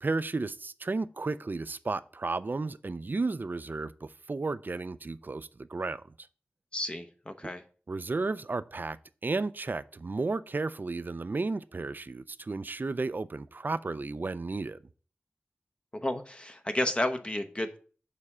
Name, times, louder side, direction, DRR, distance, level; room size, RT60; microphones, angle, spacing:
voice 1, 0.0-6.0 7.9-9.0 9.2-14.8, right 3 dB, 50° right, 0.4 m, -33 dB
voice 2, 6.7-7.6 15.9-17.8, left 1 dB, 25° left, 0.7 m, -32 dB
6.6 x 3.6 x 5.4 m
wide cardioid pair, 70°, 4 cm